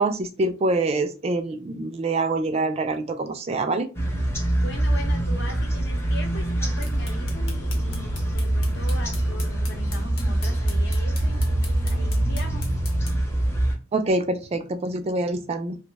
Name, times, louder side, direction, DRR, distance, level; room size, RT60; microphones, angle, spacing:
voice 1, 0.0-3.9 13.9-15.8, right 2 dB, 30° right, 0.3 m, -25 dB
sound 1, 3.9-13.7, right 1 dB, 10° left, 0.6 m, -24 dB
voice 2, 4.6-12.7, left 1 dB, 55° left, 0.8 m, -40 dB
sound 2, 6.5-13.3, left 3 dB, 90° left, 1.0 m, -42 dB
2.9 x 2.0 x 3.3 m
head